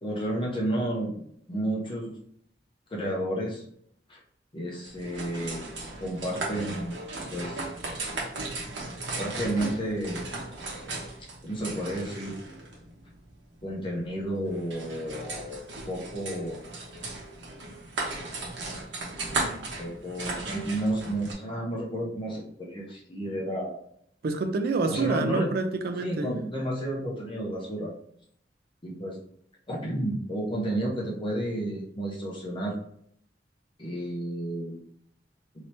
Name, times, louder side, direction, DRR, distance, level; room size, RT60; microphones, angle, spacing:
voice 1, 0.0-2.2 2.9-3.6 4.1-4.2 4.5-5.6 6.0-7.0 7.3-7.6 9.2-10.2 11.4-12.3 13.6-16.6 19.8-23.8 24.9-25.5 26.0-27.9 28.8-29.2 29.7-32.8 33.8-34.8, right 1 dB, 30° left, 0.7 m, -31 dB
sound 1, 4.8-21.3, right 2 dB, 85° right, 1.0 m, -36 dB
voice 2, 24.2-26.3, right 3 dB, 60° right, 0.4 m, -27 dB
2.8 x 2.8 x 3.2 m
head